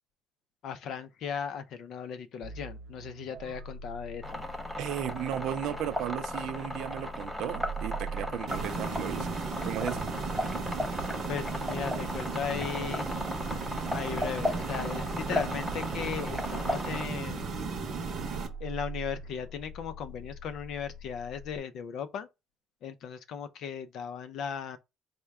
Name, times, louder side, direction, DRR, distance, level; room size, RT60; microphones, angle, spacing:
voice 1, 0.6-4.4 11.3-13.1 13.9-17.6 18.6-22.3 22.8-24.8, left 7 dB, 55° left, 0.5 m, -37 dB
sound 1, 2.4-21.6, right 1 dB, 80° right, 0.8 m, -44 dB
sound 2, 4.2-17.0, left 1 dB, ahead, 0.5 m, -36 dB
voice 2, 4.8-10.1, right 10 dB, 65° right, 0.5 m, -35 dB
sound 3, 8.5-18.5, right 4 dB, 40° right, 0.8 m, -35 dB
4.5 x 2.1 x 3.5 m
cardioid pair, 160°, 0 cm